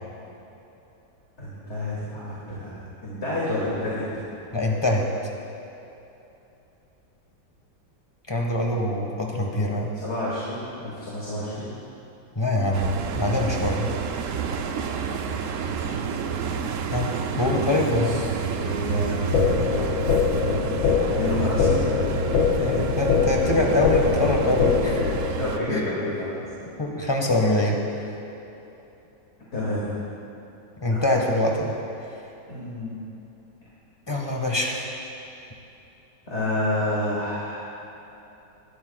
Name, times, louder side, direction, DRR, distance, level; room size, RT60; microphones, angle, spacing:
voice 1, 1.4-4.3 9.9-11.8 17.4-17.7 18.0-19.2 21.2-21.9 25.4-26.6 29.5-29.9 30.9-31.0 32.5-33.0 36.3-37.6, left 1 dB, 35° left, -8 dB, 2.6 m, -29 dB
voice 2, 4.5-5.0 8.3-9.9 12.3-13.9 16.9-17.1 17.4-18.3 22.6-25.2 25.7-25.8 26.8-27.8 30.8-31.8 34.1-34.8, left 1 dB, 15° left, 0 dB, 1.3 m, -24 dB
sound 1, 12.7-25.6, right 6 dB, 70° right, 0.7 m, -29 dB
sound 2, 19.3-25.3, left 7 dB, 90° left, 1.5 m, -23 dB
20.5 x 13.0 x 2.4 m, 2.9 s
omnidirectional pair, 2.1 m